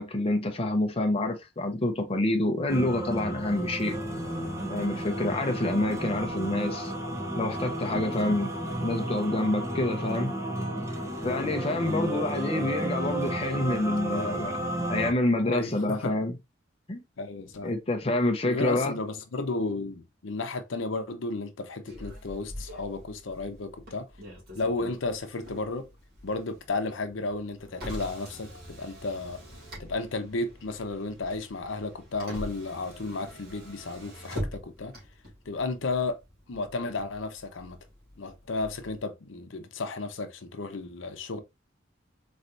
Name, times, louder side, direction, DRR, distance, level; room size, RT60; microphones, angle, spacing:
voice 1, 0.0-4.0 4.7-6.9 7.3-8.5 8.8-10.3 11.2-14.6 14.9-16.3 16.9-17.0 17.6-19.0, left 1 dB, 30° left, 0.6 m, -27 dB
sound 1, 2.7-15.1, right 1 dB, 15° right, 0.7 m, -32 dB
voice 2, 15.4-16.1 17.2-17.7 18.4-24.1 24.5-25.9 26.2-29.4 29.8-34.9 35.5-36.2 36.5-37.8 38.2-41.4, left 3 dB, 80° left, 0.7 m, -33 dB
Motor vehicle (road), 21.9-39.0, equal, 55° right, 2.3 m, -44 dB
4.1 x 3.2 x 2.6 m
head